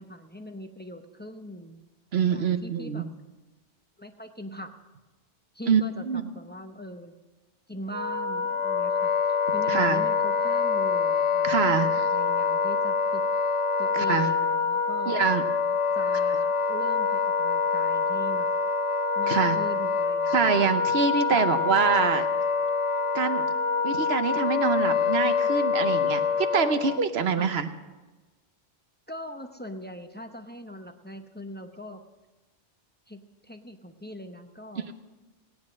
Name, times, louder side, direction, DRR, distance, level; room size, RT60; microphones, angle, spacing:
voice 1, 0.0-1.8 2.3-3.1 4.0-4.7 5.5-7.1 7.7-13.3 13.8-15.2 15.9-18.5 19.1-20.7 21.3-21.5 27.4-27.6 29.1-32.0 33.1-34.9, equal, 10° left, 6 dB, 0.6 m, -41 dB
voice 2, 2.1-3.1 5.7-6.2 9.7-10.0 11.4-12.0 13.9-14.3 15.1-15.4 19.3-19.6 20.3-22.2 23.1-23.4 23.8-27.7, right 6 dB, 65° right, 9 dB, 1.1 m, -25 dB
Wind instrument woodwind instrument, 7.9-27.0, left 5 dB, 45° left, 0.4 m, -25 dB
17.5 x 9.7 x 6.3 m, 1.2 s
omnidirectional pair, 1.2 m